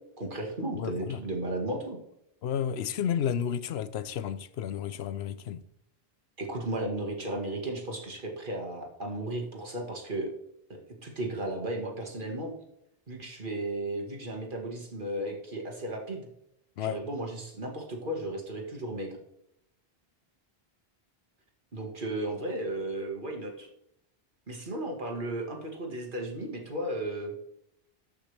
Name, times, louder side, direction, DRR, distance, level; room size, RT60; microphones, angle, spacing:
voice 1, 0.2-2.0 6.4-10.3 10.7-12.5 13.1-16.3 16.8-19.2 21.7-23.7 24.5-27.3, right 1 dB, 55° right, 2.0 m, -35 dB
voice 2, 0.7-1.2 2.4-5.6 16.8-17.0, left 8 dB, 90° left, 0.9 m, -32 dB
13.5 x 5.9 x 3.4 m
omnidirectional pair, 1.0 m